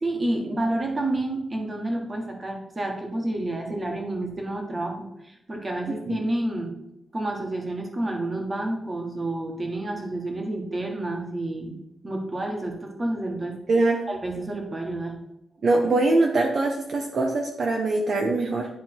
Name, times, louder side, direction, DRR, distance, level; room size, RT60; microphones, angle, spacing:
voice 1, 0.0-6.7 7.1-13.6 14.1-15.2, right 1 dB, 25° right, 2 dB, 1.6 m, -29 dB
voice 2, 13.7-14.0 15.6-18.7, right 2 dB, 50° right, 2 dB, 0.9 m, -22 dB
11.0 x 3.7 x 4.5 m, 0.84 s
wide cardioid pair, 140°, 0 cm